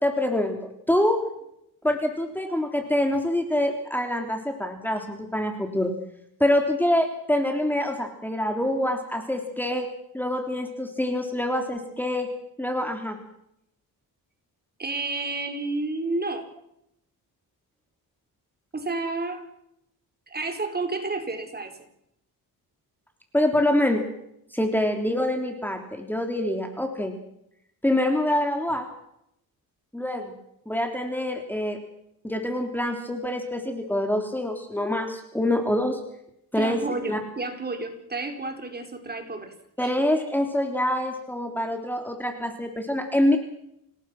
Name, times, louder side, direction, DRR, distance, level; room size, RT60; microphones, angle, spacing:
voice 1, 0.0-0.6 0.9-1.2 1.8-5.9 6.4-9.9 10.1-12.3 12.6-13.2 23.3-24.0 24.5-27.1 27.8-28.8 29.9-30.3 30.7-31.8 32.2-36.0 36.5-36.8 37.1-37.2 39.8-43.4, left 1 dB, 5° left, 4 dB, 3.3 m, -25 dB
voice 2, 14.8-16.5 18.7-19.4 20.3-21.7 36.5-39.5 39.8-39.9, right 3 dB, 25° right, 5 dB, 4.6 m, -30 dB
28.0 x 19.5 x 6.1 m, 0.77 s
cardioid pair, 105°, 37 cm